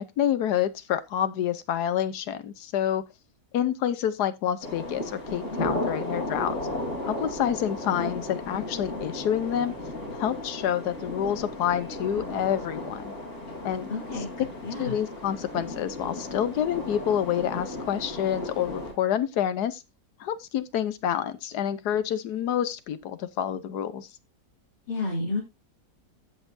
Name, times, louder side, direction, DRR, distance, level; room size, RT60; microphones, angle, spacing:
voice 1, 0.0-3.0 3.5-6.6 7.0-9.7 10.1-13.1 13.6-13.9 14.1-14.2 14.8-19.8 20.2-24.1, left 10 dB, 70° left, 1.3 m, -28 dB
distant rumbling, 4.6-18.9, left 1 dB, 40° left, 3.6 m, -35 dB
voice 2, 13.9-14.3 14.6-15.0 24.9-25.4, left 3 dB, 85° left, 3.9 m, -30 dB
15.5 x 5.7 x 2.6 m
omnidirectional pair, 1.8 m